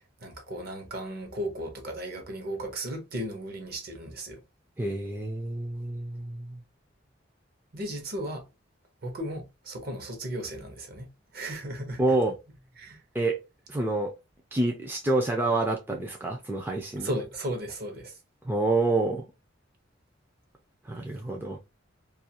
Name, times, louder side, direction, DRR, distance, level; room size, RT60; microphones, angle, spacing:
voice 1, 0.2-4.4 7.7-8.5 9.0-11.1 11.3-12.2 12.8-13.0 17.0-18.1, right 1 dB, 50° right, 0.8 m, -35 dB
voice 2, 4.8-6.6 12.0-12.4 13.1-13.4 13.7-14.1 14.5-17.1 18.4-19.2 20.8-21.6, right 2 dB, 10° right, 0.3 m, -27 dB
2.4 x 2.3 x 2.7 m
head